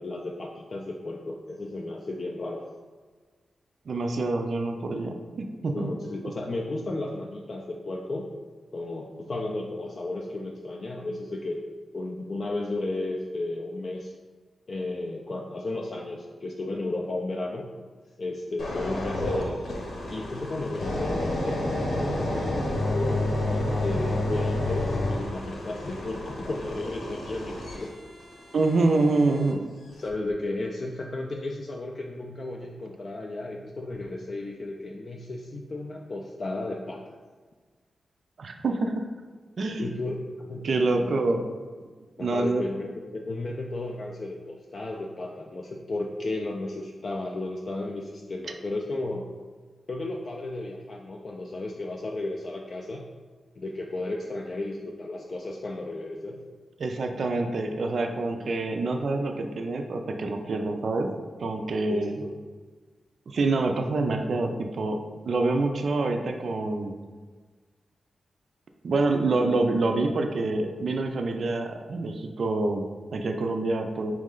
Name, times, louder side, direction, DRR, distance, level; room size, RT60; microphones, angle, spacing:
voice 1, 0.0-2.7 5.7-8.3 8.7-11.6 11.9-14.1 14.7-17.7 18.2-19.6 20.1-27.9 30.0-37.2 39.8-41.4 42.2-49.3 49.9-53.1 53.6-56.4 61.9-62.3, left 2 dB, 40° left, -1 dB, 0.3 m, -34 dB
voice 2, 3.9-5.9 6.2-6.3 28.5-29.6 38.4-39.1 39.6-39.9 40.6-41.4 42.2-42.7 56.8-61.1 61.4-62.2 63.3-65.0 65.3-66.9 68.8-74.1, right 3 dB, 55° right, 4 dB, 0.3 m, -26 dB
sound 1, 18.6-29.5 30.1-30.3, left 1 dB, 65° left, 0.9 m, -30 dB
4.5 x 3.1 x 3.7 m, 1.4 s
wide cardioid pair, 165°, 0 cm